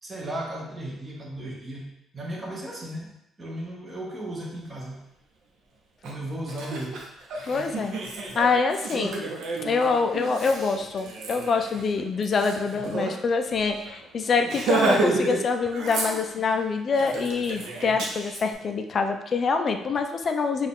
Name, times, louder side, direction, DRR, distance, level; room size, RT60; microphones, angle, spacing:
voice 1, 0.0-3.1 3.4-5.1 6.0-7.1 8.9-9.2, right 1 dB, 20° right, -2 dB, 0.8 m, -35 dB
Laughter, 6.0-6.1 6.5-13.1 13.5-13.6 13.9-14.0 14.4-15.4 15.7-16.5 16.9-18.4, right 3 dB, 70° right, 0.7 m, -30 dB
voice 2, 7.4-8.0 8.3-9.2 9.6-20.7, left 4 dB, 35° left, 6 dB, 0.3 m, -25 dB
4.5 x 2.4 x 3.6 m, 0.84 s
cardioid pair, 155°, 0 cm